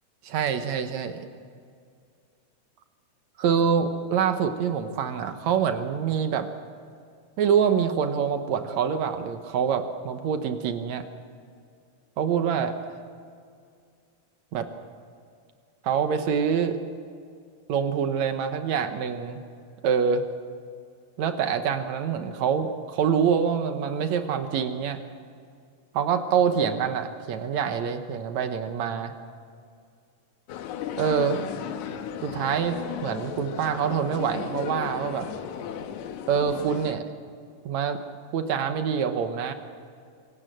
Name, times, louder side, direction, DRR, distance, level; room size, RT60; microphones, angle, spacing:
voice 1, 0.2-1.3 3.4-6.5 7.4-11.0 12.2-12.7 14.5-14.7 15.8-16.8 17.7-19.4 19.8-20.2 21.2-25.0 25.9-29.1 31.0-31.4 32.2-35.3 36.3-37.0 37.7-38.0 38.3-39.5, right 7 dB, 65° right, 7 dB, 2.2 m, -25 dB
sound 1, 30.5-37.0, left 9 dB, 75° left, 2.3 m, -35 dB
25.5 x 17.0 x 7.7 m, 2.2 s
omnidirectional pair, 3.7 m